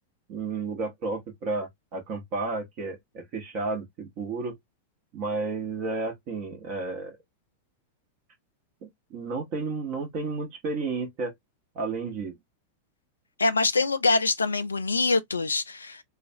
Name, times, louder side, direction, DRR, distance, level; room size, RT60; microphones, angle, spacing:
voice 1, 0.3-4.5 5.1-7.2 8.8-11.3 11.7-12.4, right 3 dB, 40° right, 0.9 m, -32 dB
voice 2, 13.4-16.0, left 3 dB, 75° left, 0.3 m, -24 dB
2.4 x 2.3 x 2.6 m
figure-of-eight pair, 90°, 0 cm